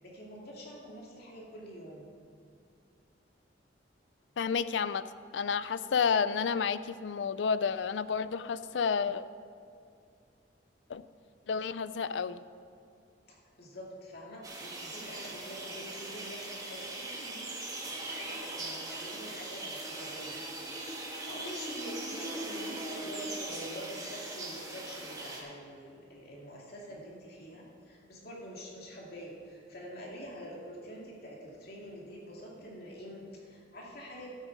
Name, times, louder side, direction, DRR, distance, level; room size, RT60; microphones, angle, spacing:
voice 1, 0.0-2.1 13.3-20.4 21.2-34.3, equal, 60° left, -3 dB, 2.6 m, -46 dB
voice 2, 4.4-5.0 5.3-9.2 10.9-11.0 11.5-12.4, left 6 dB, 80° left, 15 dB, 0.4 m, -30 dB
sound 1, 14.4-25.4, right 2 dB, 20° right, 1.8 m, -40 dB
12.5 x 9.0 x 4.7 m, 2.4 s
head